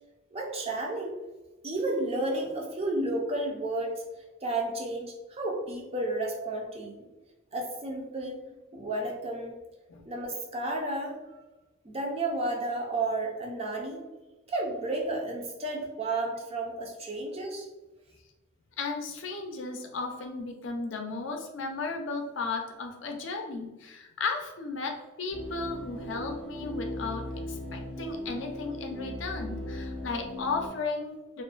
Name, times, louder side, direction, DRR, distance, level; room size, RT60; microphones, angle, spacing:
voice 1, 0.3-1.1 1.6-4.0 4.4-7.1 7.5-8.4 8.7-9.6 10.1-11.2 11.8-14.0 14.5-17.7, right 2 dB, 30° right, 0 dB, 0.4 m, -32 dB
voice 2, 18.8-31.4, left 4 dB, 65° left, 3 dB, 0.4 m, -35 dB
sound 1, 25.3-30.7, left 1 dB, 70° right, 0.9 m, -38 dB
2.4 x 2.1 x 2.4 m, 1.1 s
head